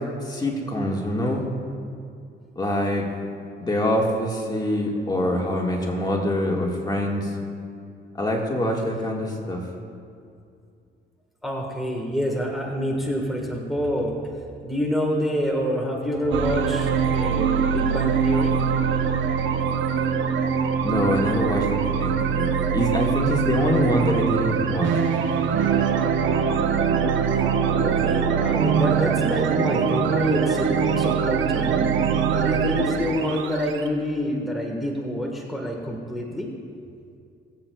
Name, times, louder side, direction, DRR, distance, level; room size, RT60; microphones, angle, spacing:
voice 1, 0.3-1.4 2.6-3.0 3.6-7.3 8.2-9.6 20.8-25.1, left 1 dB, 20° left, -1 dB, 1.7 m, -25 dB
voice 2, 11.4-14.1 14.6-18.6 27.7-31.9 32.3-36.5, equal, ahead, -1 dB, 1.4 m, -27 dB
sound 1, 16.3-33.9, right 7 dB, 75° right, 0.8 m, -23 dB
21.5 x 7.9 x 2.3 m, 2.4 s
cardioid pair, 90°, 20 cm